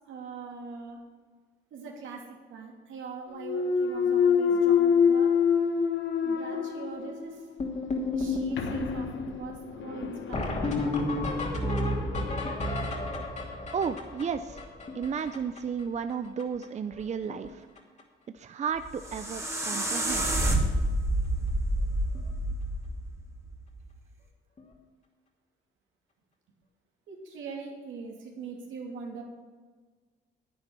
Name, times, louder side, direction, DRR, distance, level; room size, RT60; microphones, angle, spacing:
voice 1, 0.0-1.0 1.7-5.3 6.2-7.5 8.1-10.8 27.1-29.2, right 5 dB, 80° right, 0 dB, 2.9 m, -42 dB
Thump thud, 3.4-7.4 7.9-12.6, left 7 dB, 75° left, 1.3 m, -27 dB
sound 1, 7.6-15.8 16.1-16.2 16.4-16.7 16.9-17.5 17.8-18.0 18.8-18.9 19.3-19.4 19.7-19.9 22.2-22.3 24.6-24.7, left 2 dB, 35° left, 2.7 m, -32 dB
voice 2, 13.7-14.6 14.9-17.7 18.3-20.3, right 6 dB, 35° right, 10 dB, 0.5 m, -33 dB
sound 2, 18.8-23.9, right 1 dB, 15° right, 2.3 m, -29 dB
10.5 x 9.6 x 6.1 m, 1.4 s
cardioid pair, 90°, 20 cm